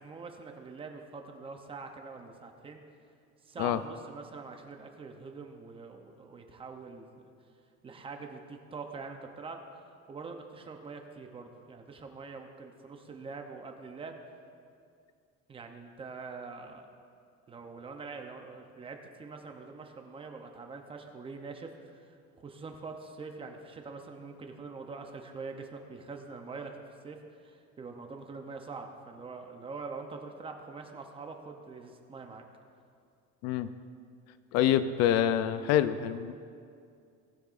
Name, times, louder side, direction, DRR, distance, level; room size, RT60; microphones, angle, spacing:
voice 1, 0.0-2.8 3.4-7.2 7.8-14.1 15.5-16.9 17.5-32.4, right 4 dB, 20° right, 4 dB, 0.6 m, -44 dB
voice 2, 34.5-36.3, left 10 dB, 60° left, 13 dB, 0.5 m, -26 dB
18.5 x 9.2 x 2.5 m, 2.4 s
cardioid pair, 175°, 30 cm